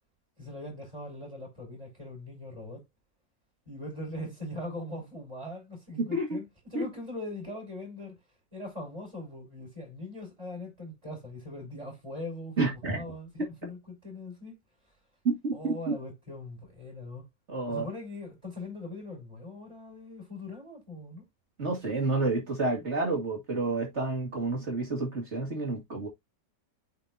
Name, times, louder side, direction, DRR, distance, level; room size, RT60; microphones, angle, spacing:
voice 1, 0.4-2.8 3.7-6.4 6.7-8.2 8.5-14.5 15.5-17.3 17.7-21.3, left 1 dB, 20° right, 5.6 m, -41 dB
voice 2, 6.0-6.4 6.7-6.9 12.6-13.0 15.2-16.0 17.5-17.9 21.6-26.1, right 3 dB, 40° right, 2.2 m, -29 dB
9.1 x 4.6 x 2.7 m
omnidirectional pair, 1.9 m